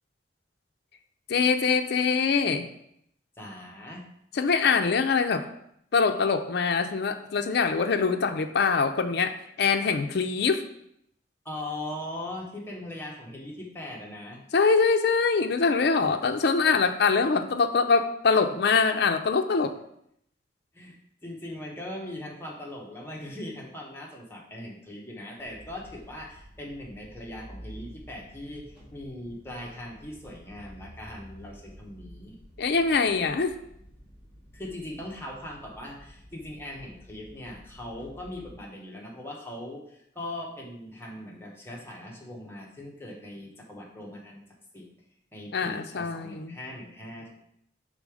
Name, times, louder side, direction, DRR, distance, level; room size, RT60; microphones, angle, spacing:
voice 1, 1.3-2.7 4.3-5.4 5.9-10.6 14.5-19.7 32.6-33.5 45.5-46.5, left 5 dB, 65° left, 6 dB, 0.5 m, -24 dB
voice 2, 3.4-4.0 11.4-14.4 20.7-32.4 34.5-44.4 44.7-44.9 45.3-47.4, left 1 dB, 15° left, -1 dB, 1.1 m, -40 dB
sound 1, 25.4-38.5, equal, 5° right, 1.9 m, -50 dB
5.3 x 3.8 x 4.8 m, 0.73 s
head